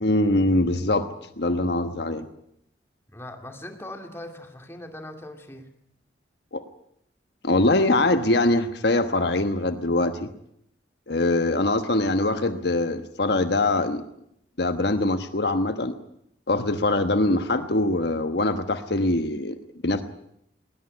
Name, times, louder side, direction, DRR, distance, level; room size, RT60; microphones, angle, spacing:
voice 1, 0.0-1.1 1.4-2.3 6.5-6.6 7.4-10.3 11.1-14.0 14.6-15.9 16.5-20.0, left 2 dB, 60° left, 8 dB, 1.2 m, -23 dB
voice 2, 3.1-5.7, left 1 dB, 15° left, 4 dB, 2.5 m, -40 dB
20.0 x 20.0 x 9.8 m, 0.74 s
head